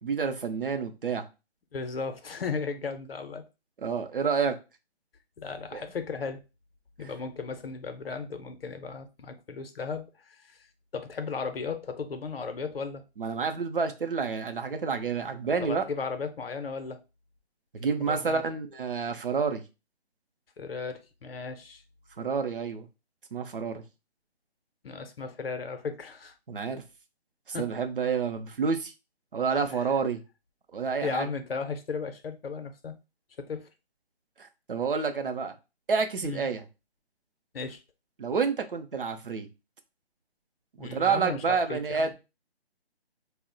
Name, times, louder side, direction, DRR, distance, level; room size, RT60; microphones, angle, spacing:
voice 1, 0.0-1.2 3.8-4.5 5.7-5.8 13.2-15.8 17.7-19.6 22.2-22.9 23.3-23.8 26.5-26.8 27.5-28.9 29.3-30.2 30.7-31.3 34.4-35.5 35.9-36.6 38.2-39.5 40.8-42.1, right 5 dB, 55° right, 0.5 m, -29 dB
voice 2, 1.7-3.4 5.4-6.4 7.0-10.6 10.9-13.0 15.6-17.0 18.0-18.4 20.6-21.8 24.8-26.3 27.5-27.7 29.7-29.9 31.0-32.9 33.4-33.7 36.2-36.5 37.5-37.8 40.8-42.1, left 5 dB, 60° left, 0.6 m, -35 dB
2.3 x 2.0 x 3.7 m
hypercardioid pair, 170°, 33 cm